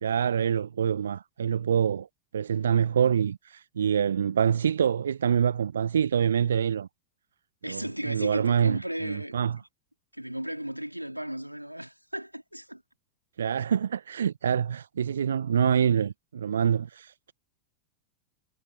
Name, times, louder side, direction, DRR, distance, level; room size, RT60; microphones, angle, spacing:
voice 1, 0.0-2.1 2.3-6.9 7.7-9.6 13.4-17.3, right 8 dB, 65° right, 1.0 m, -26 dB
voice 2, 7.6-9.7 10.1-12.8, equal, 90° right, 3.5 m, -35 dB
figure-of-eight pair, 90°, 0 cm